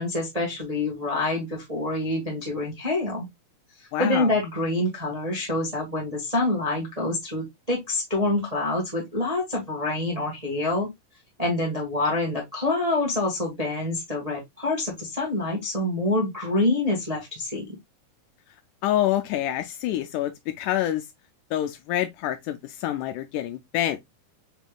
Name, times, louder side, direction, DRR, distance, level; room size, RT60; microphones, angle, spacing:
voice 1, 0.0-3.3 3.8-10.9 11.4-17.7, left 2 dB, 40° right, 0.5 m, -26 dB
voice 2, 3.9-4.3 18.8-20.3 20.6-21.1 21.5-24.0, left 12 dB, 80° left, 2.0 m, -26 dB
5.8 x 3.6 x 2.3 m
omnidirectional pair, 3.7 m